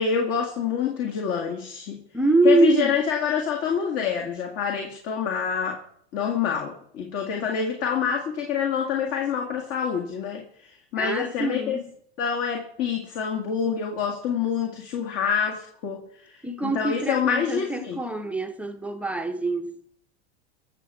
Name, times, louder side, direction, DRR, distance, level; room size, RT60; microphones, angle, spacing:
voice 1, 0.0-2.0 2.4-5.8 6.1-11.8 12.2-18.0, left 7 dB, 45° left, 1.9 m, -27 dB
voice 2, 2.1-3.0 11.0-11.9 16.4-19.8, right 2 dB, 5° right, 0.8 m, -24 dB
20.5 x 7.0 x 4.7 m
hypercardioid pair, 95°, 33 cm